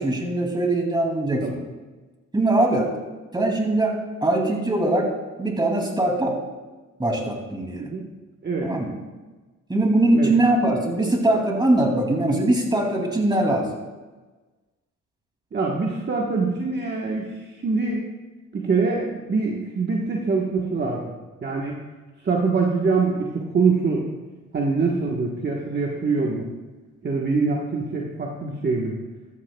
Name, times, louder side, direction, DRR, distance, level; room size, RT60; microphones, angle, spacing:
voice 1, 0.0-1.6 2.3-2.9 3.3-3.9 4.2-5.1 5.4-6.4 7.0-7.9 8.6-8.9 9.7-13.7, right 1 dB, 15° right, 1 dB, 2.7 m, -21 dB
voice 2, 15.5-18.0 18.5-21.1 21.4-21.8 22.2-24.1 24.5-26.5 27.0-28.9, right 4 dB, 35° right, -1 dB, 1.4 m, -24 dB
14.0 x 13.5 x 2.3 m, 1.3 s
cardioid pair, 90°, 30 cm